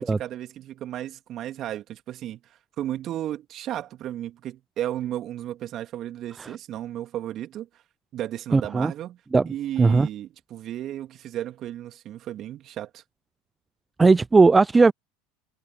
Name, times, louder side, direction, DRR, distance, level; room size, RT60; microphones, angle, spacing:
voice 1, 0.0-2.4 2.8-7.7 8.1-9.2 9.4-13.0, right 12 dB, 45° right, 2.9 m, -34 dB
voice 2, 8.5-8.9 9.3-9.5 9.8-10.1 14.0-14.9, right 3 dB, 15° right, 0.3 m, -17 dB
hypercardioid pair, 85°, 0 cm